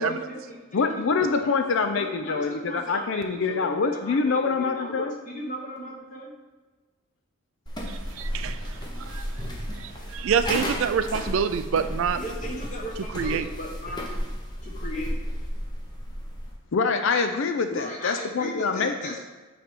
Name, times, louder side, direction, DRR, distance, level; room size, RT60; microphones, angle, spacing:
voice 1, 0.0-1.5 1.9-6.3 12.2-14.0 14.6-15.1 17.7-19.2, equal, 35° left, -1 dB, 1.3 m, -37 dB
voice 2, 0.7-5.1 16.7-19.1, left 4 dB, 55° left, 6 dB, 0.4 m, -25 dB
sound 1, 7.7-16.6, equal, 20° left, 0.8 m, -33 dB
voice 3, 7.9-12.2 13.1-13.5, right 7 dB, 60° right, 11 dB, 0.3 m, -27 dB
8.5 x 3.3 x 5.1 m, 1.2 s
head